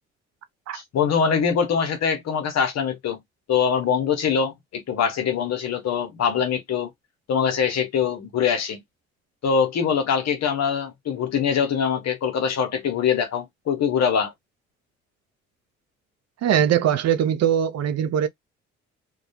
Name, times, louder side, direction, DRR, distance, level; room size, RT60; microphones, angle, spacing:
voice 1, 0.7-3.2 3.5-6.9 7.3-8.8 9.4-14.3, left 7 dB, 60° left, 1.0 m, -23 dB
voice 2, 16.4-18.3, right 9 dB, 60° right, 0.6 m, -21 dB
2.3 x 2.3 x 2.7 m
supercardioid pair, 55°, 30 cm